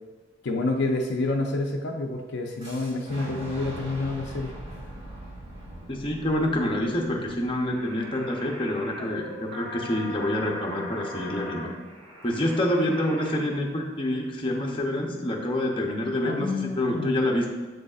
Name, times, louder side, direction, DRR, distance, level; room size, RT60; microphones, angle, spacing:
voice 1, 0.4-4.5 16.2-17.1, left 2 dB, 60° left, 1 dB, 0.5 m, -28 dB
Boom, 2.6-8.5, right 1 dB, 30° right, 1.8 m, -42 dB
voice 2, 5.9-11.7 12.2-16.5 16.8-17.5, left 1 dB, 25° left, 0 dB, 0.7 m, -27 dB
sound 1, 7.7-13.4, equal, 90° right, 1.3 m, -40 dB
7.5 x 5.2 x 2.4 m, 1.3 s
head